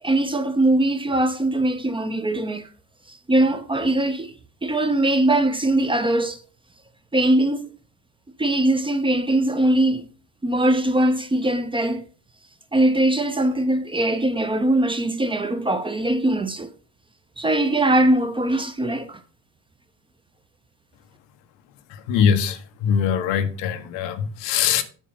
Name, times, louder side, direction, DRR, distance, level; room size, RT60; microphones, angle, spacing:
voice 1, 0.0-2.7 3.1-4.3 4.6-6.4 7.1-7.7 8.4-10.1 10.4-12.1 12.7-16.7 17.4-19.2, right 1 dB, 10° right, 0.6 m, -21 dB
voice 2, 21.9-24.8, left 7 dB, 85° left, 1.0 m, -22 dB
7.3 x 6.6 x 3.9 m
cardioid pair, 120°, 42 cm